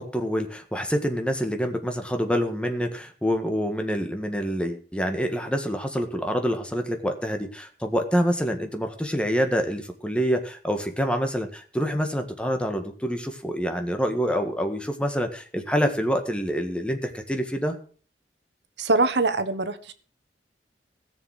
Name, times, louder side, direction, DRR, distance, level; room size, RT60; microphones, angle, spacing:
voice 1, 0.0-17.8, equal, 5° left, 5 dB, 1.6 m, -26 dB
voice 2, 18.8-19.9, right 3 dB, 85° right, 12 dB, 1.2 m, -23 dB
17.0 x 7.0 x 6.5 m, 0.42 s
head